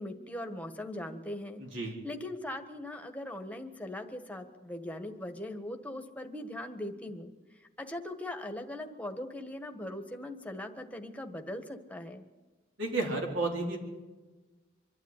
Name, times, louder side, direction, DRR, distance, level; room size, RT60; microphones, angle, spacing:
voice 1, 0.0-12.2, left 1 dB, 5° left, 5 dB, 1.5 m, -40 dB
voice 2, 12.8-13.8, right 2 dB, 65° right, 1 dB, 4.3 m, -31 dB
25.0 x 11.5 x 9.9 m, 1.2 s
head